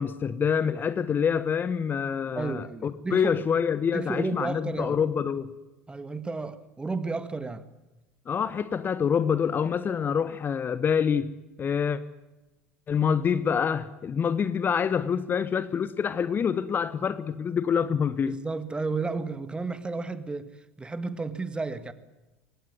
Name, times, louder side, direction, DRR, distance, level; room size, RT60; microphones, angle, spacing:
voice 1, 0.0-5.5 8.3-11.3 11.6-12.0 12.9-18.4, left 7 dB, 30° left, 1.1 m, -26 dB
voice 2, 2.4-3.4 3.9-5.0 5.9-7.6 18.3-21.9, right 3 dB, 15° right, 1.9 m, -32 dB
24.5 x 19.0 x 9.6 m
figure-of-eight pair, 70°, 7 cm